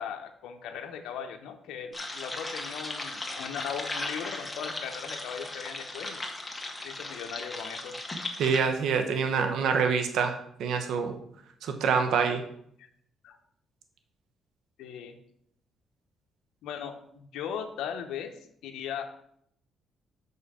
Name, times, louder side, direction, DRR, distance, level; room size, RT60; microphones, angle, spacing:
voice 1, 0.0-6.2 6.8-8.0 12.8-12.9 13.2-13.4 14.8-15.2 16.6-19.1, left 8 dB, 85° left, 5 dB, 0.8 m, -38 dB
sound 1, 1.9-8.6, left 2 dB, 15° left, 1.5 m, -37 dB
voice 2, 8.4-11.2 11.6-12.4, right 6 dB, 75° right, 6 dB, 1.0 m, -26 dB
6.2 x 5.5 x 5.0 m, 0.69 s
cardioid pair, 90°, 0 cm